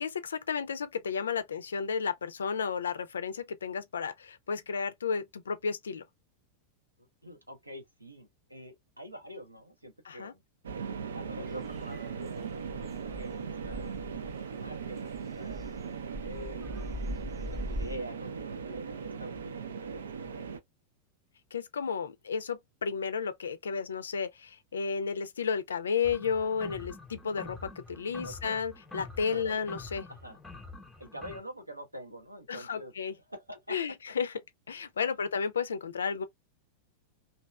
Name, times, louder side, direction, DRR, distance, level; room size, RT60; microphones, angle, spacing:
voice 1, 0.0-6.0 10.1-10.3 21.5-27.6 27.9-30.1 32.5-33.1 33.7-34.3 34.7-36.2, left 6 dB, 70° left, 0.4 m, -32 dB
voice 2, 7.2-10.4 11.1-16.6 17.5-20.5 28.2-28.6 29.3-29.6 30.1-30.4 31.0-33.8 35.0-35.1, equal, 85° right, 0.9 m, -46 dB
sound 1, 10.6-20.6, right 6 dB, 65° right, 0.4 m, -39 dB
sound 2, 11.5-18.0, equal, 15° right, 0.5 m, -42 dB
sound 3, 26.0-31.4, left 3 dB, 5° left, 0.8 m, -46 dB
3.0 x 2.7 x 2.2 m
figure-of-eight pair, 90°, 0 cm